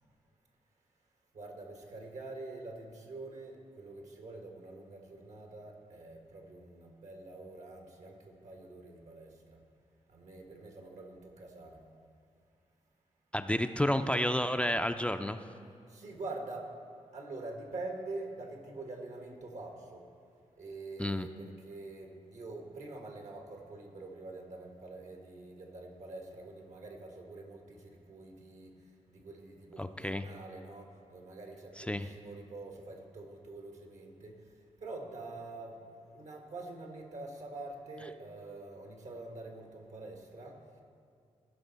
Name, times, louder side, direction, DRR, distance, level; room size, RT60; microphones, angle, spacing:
voice 1, 1.3-9.6 10.1-11.8 15.9-16.7 17.1-20.0 20.6-28.8 29.1-34.3 34.8-35.8 36.0-40.6, right 2 dB, 70° right, 2 dB, 1.4 m, -45 dB
voice 2, 13.3-15.4 21.0-21.3 29.8-30.3 31.8-32.1, left 1 dB, 10° left, 8 dB, 0.4 m, -31 dB
16.0 x 5.4 x 4.0 m, 2.3 s
cardioid pair, 55°, 12 cm